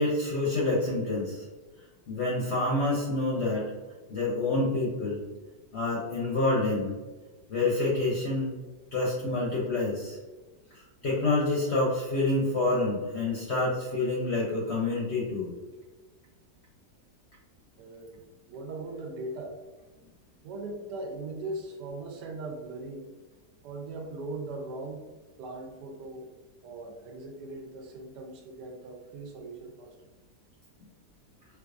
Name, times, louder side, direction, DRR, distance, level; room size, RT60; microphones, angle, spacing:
voice 1, 0.0-1.4 2.1-3.7 4.1-5.2 5.7-7.0 7.5-8.5 8.9-10.2 11.0-15.5, left 2 dB, 65° left, -4 dB, 0.6 m, -27 dB
voice 2, 17.8-19.6 20.4-23.1 23.6-25.0 25.4-26.3 26.6-29.9, right 2 dB, 80° right, 2 dB, 1.2 m, -39 dB
4.4 x 2.4 x 2.4 m, 1.3 s
omnidirectional pair, 1.8 m